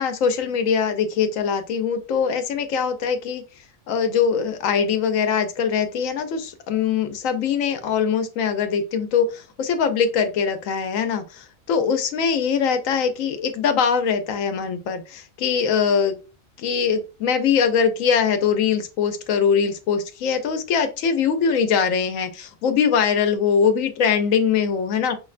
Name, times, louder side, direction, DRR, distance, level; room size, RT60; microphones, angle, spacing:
voice 1, 0.0-3.4 3.9-16.2 16.6-25.2, left 6 dB, 85° left, 8 dB, 1.0 m, -22 dB
5.1 x 2.1 x 2.4 m, 0.32 s
omnidirectional pair, 1.3 m